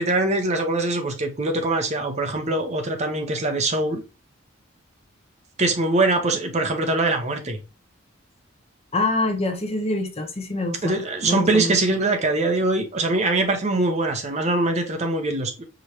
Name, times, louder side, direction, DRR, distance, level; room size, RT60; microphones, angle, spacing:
voice 1, 0.0-4.0 5.6-7.6 10.8-15.6, right 2 dB, 35° right, 0.8 m, -23 dB
voice 2, 8.9-12.0, left 2 dB, 30° left, 1.0 m, -26 dB
5.0 x 3.0 x 2.9 m
head